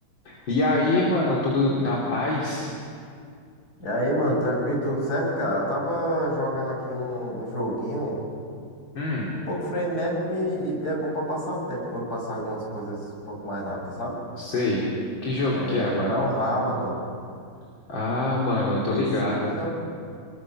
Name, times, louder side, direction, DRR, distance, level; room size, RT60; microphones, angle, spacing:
voice 1, 0.3-2.8 9.0-9.3 14.4-14.9 15.2-16.1 17.9-19.5, left 2 dB, 65° left, -5 dB, 3.9 m, -24 dB
voice 2, 3.8-8.2 9.5-13.0 13.3-14.2 15.5-17.0 18.8-19.7, equal, 45° left, -3 dB, 6.8 m, -28 dB
27.5 x 21.5 x 6.3 m, 2.3 s
omnidirectional pair, 2.3 m